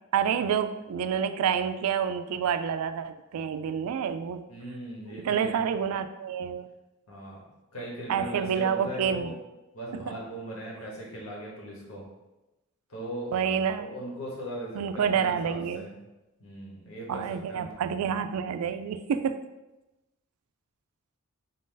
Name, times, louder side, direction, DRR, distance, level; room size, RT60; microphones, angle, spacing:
voice 1, 0.1-4.4 5.1-6.7 8.1-9.4 9.9-10.2 13.3-13.9 14.8-15.9 17.1-19.4, right 7 dB, 90° right, 13 dB, 0.3 m, -28 dB
voice 2, 4.5-5.7 7.1-7.4 7.7-9.3 9.7-12.0 12.9-13.3 13.7-15.9 16.4-17.7, right 1 dB, 75° left, -2 dB, 1.2 m, -39 dB
4.0 x 2.6 x 3.8 m, 1.0 s
head